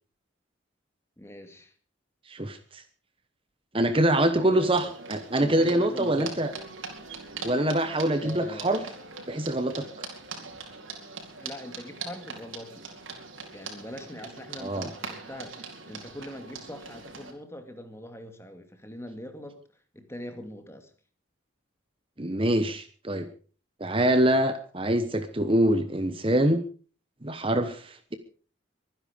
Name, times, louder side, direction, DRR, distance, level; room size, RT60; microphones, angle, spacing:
voice 1, 1.2-1.7 4.4-4.9 5.4-6.4 8.2-8.9 11.4-12.9 13.5-19.6 19.9-20.9, left 1 dB, 15° left, 7 dB, 2.2 m, -42 dB
voice 2, 2.3-2.8 3.7-6.5 7.4-8.8 9.3-9.9 14.6-14.9 22.2-23.3 23.8-26.6 27.2-28.2, right 1 dB, 25° right, 10 dB, 1.1 m, -25 dB
horse and musicians in the in town, 4.6-17.3, right 4 dB, 80° right, 4.5 m, -41 dB
24.0 x 10.5 x 5.2 m, 0.41 s
head